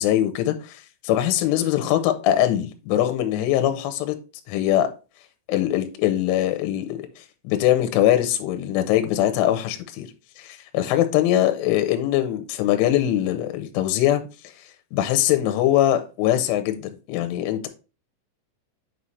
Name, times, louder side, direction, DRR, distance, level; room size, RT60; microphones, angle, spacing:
voice 1, 0.0-4.2 4.5-4.9 5.5-7.0 7.4-10.1 10.4-14.2 14.9-17.7, left 12 dB, 80° left, 3.1 m, -22 dB
8.1 x 5.6 x 3.2 m
omnidirectional pair, 6.0 m